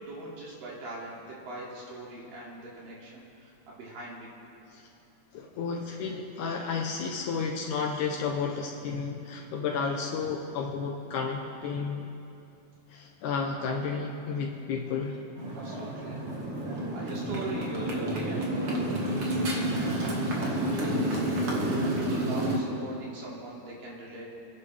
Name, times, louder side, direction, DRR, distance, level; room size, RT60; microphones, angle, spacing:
voice 1, 0.0-4.3 5.4-5.6 15.5-16.2 16.9-24.3, right 2 dB, 85° right, -5 dB, 4.4 m, -41 dB
voice 2, 5.3-12.1 12.9-15.2, left 5 dB, 75° left, 1 dB, 2.3 m, -32 dB
Motorcycle, 15.4-22.6, right 1 dB, 50° right, 2.5 m, -29 dB
28.0 x 11.0 x 3.5 m, 2.6 s
omnidirectional pair, 3.8 m